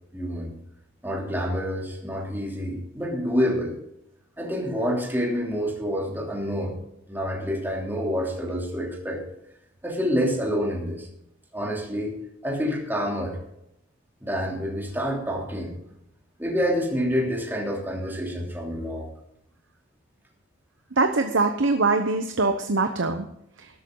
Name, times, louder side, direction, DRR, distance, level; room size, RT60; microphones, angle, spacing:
voice 1, 0.1-0.5 1.0-3.8 4.4-6.8 7.1-9.2 9.8-11.1 11.5-12.2 12.4-13.4 14.2-15.7 16.4-19.1, equal, 10° right, -2 dB, 3.0 m, -27 dB
voice 2, 20.9-23.3, right 3 dB, 75° right, 6 dB, 1.0 m, -23 dB
13.0 x 12.5 x 3.9 m, 0.77 s
head